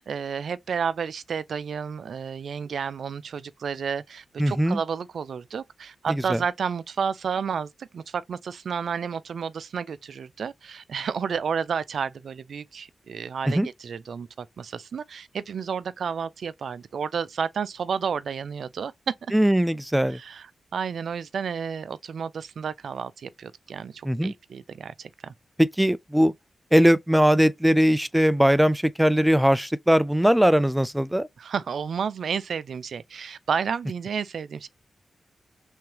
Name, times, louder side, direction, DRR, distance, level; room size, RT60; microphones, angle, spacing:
voice 1, 0.0-19.3 20.1-25.3 31.4-34.7, right 6 dB, 75° right, 0.4 m, -31 dB
voice 2, 4.4-4.8 6.3-6.4 13.5-13.7 19.3-20.2 24.0-24.3 25.6-26.3 26.7-31.3, equal, 10° right, 0.4 m, -20 dB
3.5 x 3.2 x 2.9 m
supercardioid pair, 45°, 0 cm